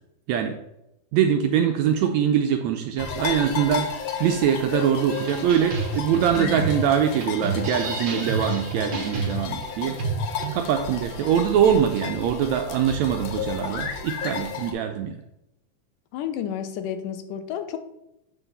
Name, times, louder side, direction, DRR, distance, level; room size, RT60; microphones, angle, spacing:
voice 1, 1.1-3.9 4.2-10.0 10.5-15.2, right 8 dB, 85° right, 5 dB, 1.6 m, -23 dB
sound 1, 3.0-14.7, left 6 dB, 70° left, 1.9 m, -33 dB
sound 2, 5.1-10.5, right 3 dB, 50° right, 1.4 m, -29 dB
voice 2, 16.1-17.8, left 9 dB, 85° left, 9 dB, 2.3 m, -31 dB
8.1 x 5.8 x 4.0 m, 0.86 s
omnidirectional pair, 3.7 m